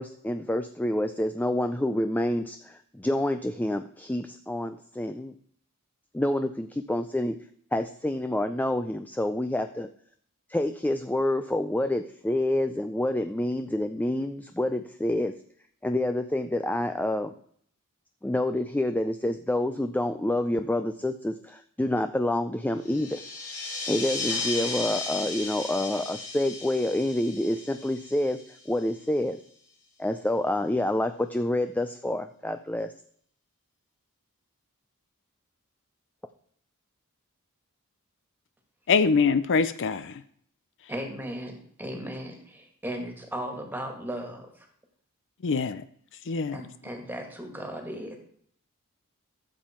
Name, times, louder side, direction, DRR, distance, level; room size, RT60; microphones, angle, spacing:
voice 1, 0.0-5.3 6.1-7.4 7.7-9.9 10.5-15.3 15.8-17.3 18.2-23.2 23.9-29.4 30.0-32.9, left 1 dB, 5° left, 8 dB, 0.4 m, -28 dB
sound 1, 22.8-29.0, left 3 dB, 85° left, 4.4 m, -35 dB
voice 2, 38.9-40.2 45.4-45.8 46.3-46.6, left 5 dB, 55° left, 13 dB, 0.5 m, -24 dB
voice 3, 40.9-44.7 46.5-48.2, equal, 10° right, 4 dB, 2.0 m, -36 dB
13.0 x 7.5 x 4.4 m, 0.63 s
head